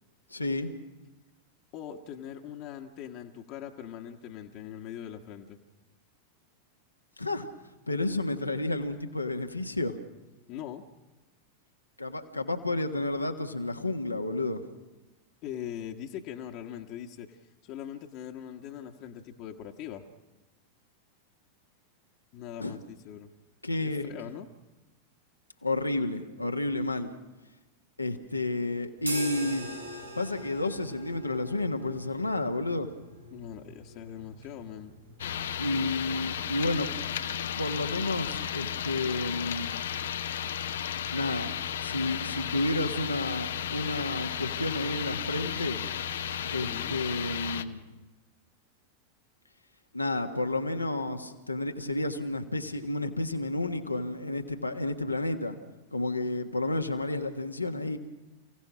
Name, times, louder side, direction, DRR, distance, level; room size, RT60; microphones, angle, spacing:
voice 1, 0.3-0.7 7.2-7.5 7.9-10.0 12.0-14.8 22.6-22.8 23.6-24.1 25.6-27.1 28.0-29.8 30.1-32.9 35.6-36.9 37.6-39.9 41.1-41.5 41.8-45.8 46.5-47.8 49.9-55.6 55.9-58.0, left 2 dB, 85° left, 5 dB, 1.6 m, -31 dB
voice 2, 1.7-5.6 10.5-10.8 15.4-20.0 22.3-23.3 23.8-24.5 33.3-34.9 46.5-47.0, left 10 dB, 40° left, 2 dB, 1.4 m, -41 dB
sound 1, 29.0-36.8, right 1 dB, 85° right, 5.0 m, -43 dB
sound 2, 35.2-47.6, left 9 dB, 60° left, 0.9 m, -34 dB
29.5 x 17.0 x 6.2 m, 1.1 s
figure-of-eight pair, 90°, 0 cm